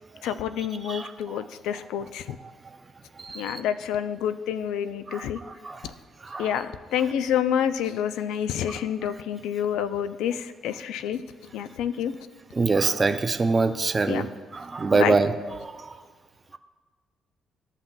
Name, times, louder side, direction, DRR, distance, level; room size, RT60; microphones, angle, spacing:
voice 1, 0.2-2.4 3.3-5.4 6.4-11.2 11.5-12.1 14.1-14.3 14.9-15.2, left 9 dB, 90° left, 12 dB, 0.3 m, -28 dB
voice 2, 3.3-3.6 5.1-5.8 6.3-6.5 12.6-15.3, right 3 dB, 30° right, 8 dB, 0.4 m, -24 dB
13.5 x 5.7 x 2.3 m, 1.4 s
cardioid pair, 90°, 0 cm